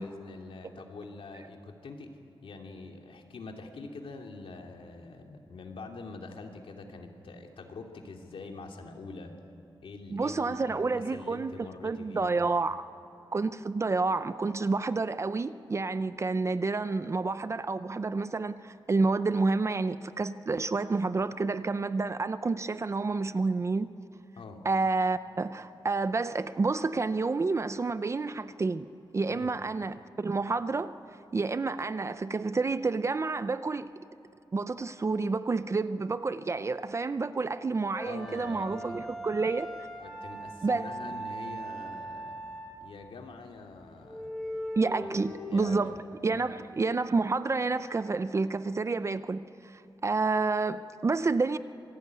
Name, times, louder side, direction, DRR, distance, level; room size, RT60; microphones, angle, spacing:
voice 1, 0.0-2.1 2.4-9.3 9.8-12.4 24.4-24.6 29.3-29.5 38.0-39.0 40.0-42.4 42.8-44.4 45.0-45.1 45.5-45.8 46.3-46.6, left 3 dB, 80° left, 2 dB, 2.7 m, -45 dB
voice 2, 10.1-12.8 13.3-23.9 24.6-28.9 29.1-31.0 31.3-33.9 34.5-39.7 40.6-41.1 44.8-51.6, right 3 dB, 30° right, 13 dB, 0.5 m, -29 dB
sound 1, 37.9-43.0 43.5-43.6 44.0-45.6, right 1 dB, 5° left, 4.6 m, -40 dB
26.0 x 18.5 x 9.5 m, 2.8 s
wide cardioid pair, 165°, 9 cm